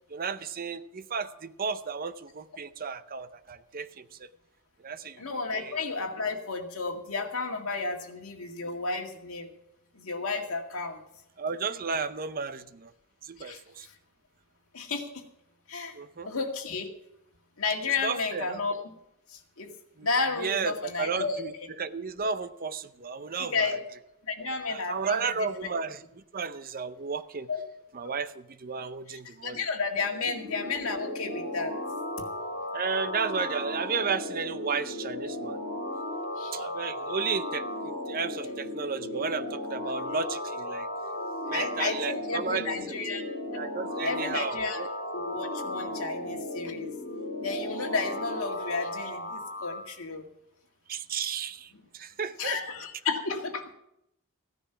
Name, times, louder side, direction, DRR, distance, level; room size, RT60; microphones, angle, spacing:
voice 1, 0.1-4.3 4.8-5.2 5.5-5.8 11.4-12.9 13.2-13.9 16.0-16.3 18.0-18.6 20.0-20.1 20.4-21.5 21.8-23.8 24.7-26.0 26.3-27.5 27.9-29.6 32.7-35.6 36.5-37.7 38.1-40.9 41.5-43.0 43.6-44.9 50.9-52.6, right 5 dB, 40° right, 12 dB, 0.7 m, -33 dB
voice 2, 5.2-9.5 9.9-11.0 13.4-13.9 14.7-15.1 15.7-16.0 16.2-16.9 17.6-18.9 19.3-19.7 20.0-21.4 23.4-23.8 24.3-25.7 27.5-27.6 29.4-31.7 36.4-36.6 41.5-43.2 44.0-44.8 45.1-46.9 47.4-50.2 52.4-53.7, left 4 dB, 70° left, 2 dB, 2.0 m, -32 dB
sound 1, 29.9-49.8, left 1 dB, 40° left, 4.7 m, -35 dB
15.5 x 10.0 x 5.8 m, 0.80 s
head